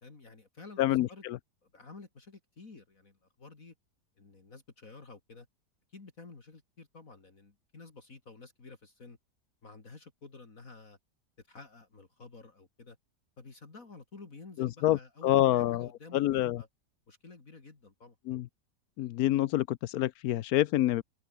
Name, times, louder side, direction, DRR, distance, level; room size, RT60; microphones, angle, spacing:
voice 1, 0.0-1.2 1.7-3.7 4.2-5.5 5.9-9.2 9.6-11.0 11.5-13.0 13.4-16.7 17.1-18.1, left 3 dB, 50° left, 3.2 m, -51 dB
voice 2, 0.8-1.4 14.6-16.6 18.3-18.5 19.0-21.0, left 14 dB, 70° left, 1.0 m, -27 dB
omnidirectional pair, 1.8 m